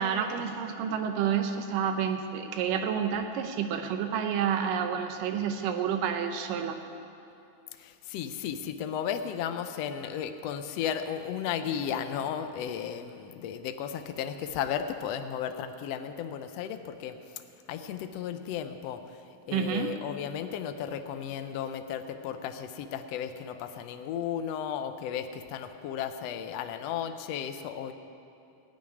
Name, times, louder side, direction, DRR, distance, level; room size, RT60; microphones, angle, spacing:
voice 1, 0.0-6.8 19.5-19.9, right 7 dB, 85° right, 6 dB, 2.4 m, -29 dB
voice 2, 7.8-17.3 17.7-19.0 19.5-27.9, left 8 dB, 85° left, 8 dB, 1.4 m, -34 dB
19.0 x 6.4 x 9.6 m, 2.6 s
omnidirectional pair, 3.8 m